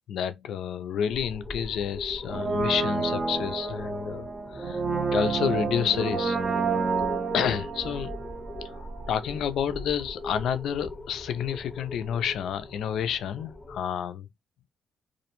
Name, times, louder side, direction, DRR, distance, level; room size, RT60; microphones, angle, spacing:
voice 1, 0.1-4.8 5.1-6.4 7.3-8.2 8.6-14.3, left 8 dB, 75° left, 0.3 m, -29 dB
sound 1, 1.1-13.8, left 2 dB, 25° left, 0.6 m, -41 dB
Brass instrument, 2.2-9.1 9.4-9.5, right 4 dB, 35° right, 0.5 m, -29 dB
2.4 x 2.1 x 2.9 m
cardioid pair, 90°, 0 cm